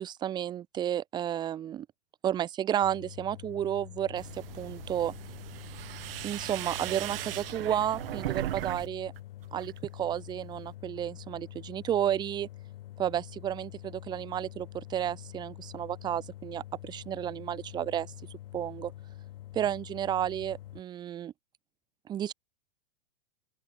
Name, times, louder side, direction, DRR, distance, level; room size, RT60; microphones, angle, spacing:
voice 1, 0.0-1.9 2.2-5.1 6.2-9.1 9.5-12.5 13.0-13.7 14.1-18.1 18.5-18.9 19.5-21.3 22.1-22.3, right 10 dB, 15° right, 0.7 m, -32 dB
sound 1, 2.8-20.8, left 14 dB, 65° left, 1.8 m, -46 dB
sound 2, 4.2-8.9 9.2-9.8, right 14 dB, 65° right, 1.3 m, -38 dB
open air
hypercardioid pair, 150°, 31 cm